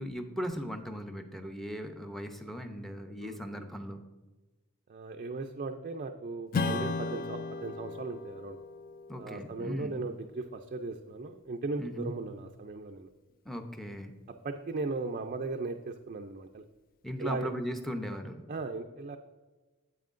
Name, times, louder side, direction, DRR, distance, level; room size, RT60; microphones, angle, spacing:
voice 1, 0.0-4.0 9.1-10.1 11.8-12.1 13.4-14.2 17.0-18.5, equal, ahead, 5 dB, 0.6 m, -38 dB
voice 2, 4.9-8.6 9.2-13.1 14.4-16.6 17.2-17.5 18.5-19.2, right 3 dB, 40° right, 4 dB, 0.4 m, -37 dB
Strum, 6.5-11.5, left 3 dB, 40° left, 0.4 m, -37 dB
9.1 x 8.0 x 2.5 m, 1.2 s
head